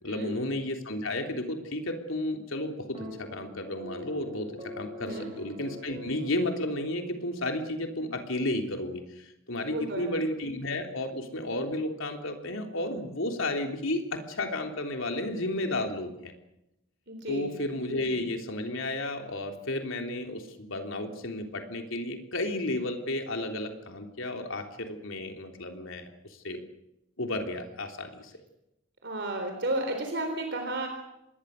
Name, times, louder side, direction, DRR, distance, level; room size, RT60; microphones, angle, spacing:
voice 1, 0.0-4.5 4.8-16.3 17.3-26.6 27.2-28.3, left 1 dB, 70° left, 4 dB, 3.4 m, -33 dB
sound 1, 2.9-7.4, equal, 25° right, 6.3 m, -43 dB
voice 2, 9.7-10.1 17.1-17.5 29.0-30.9, right 1 dB, 55° right, 4 dB, 3.8 m, -32 dB
26.5 x 21.0 x 6.7 m, 0.86 s
head